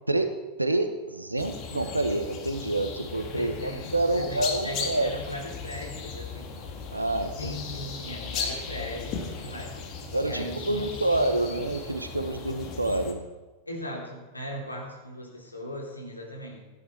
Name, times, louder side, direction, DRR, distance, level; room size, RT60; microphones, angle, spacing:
voice 1, 0.6-5.2 6.9-7.8 10.1-13.2, right 2 dB, 85° right, 8 dB, 1.3 m, -28 dB
sound 1, 1.4-13.1, left 5 dB, 40° left, 2.2 m, -37 dB
voice 2, 3.3-6.6 7.4-9.8 10.2-11.3 13.7-16.6, left 1 dB, 85° left, -1 dB, 3.2 m, -38 dB
15.5 x 10.0 x 4.7 m, 1.2 s
figure-of-eight pair, 90°, 0 cm